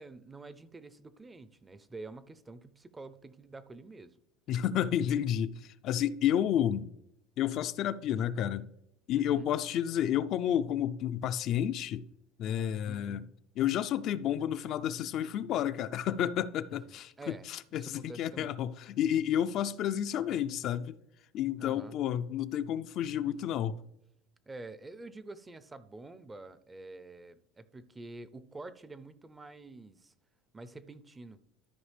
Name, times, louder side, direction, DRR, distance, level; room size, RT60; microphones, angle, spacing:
voice 1, 0.0-4.2 9.1-9.5 12.9-13.2 17.2-18.6 21.6-21.9 24.5-30.1 30.5-31.4, right 2 dB, 15° right, 0.5 m, -48 dB
voice 2, 4.5-6.9 7.4-8.7 9.1-12.0 12.4-13.2 13.6-21.0 21.3-23.8, left 10 dB, 50° left, 0.4 m, -31 dB
13.0 x 5.0 x 3.3 m
supercardioid pair, 115°, 0 cm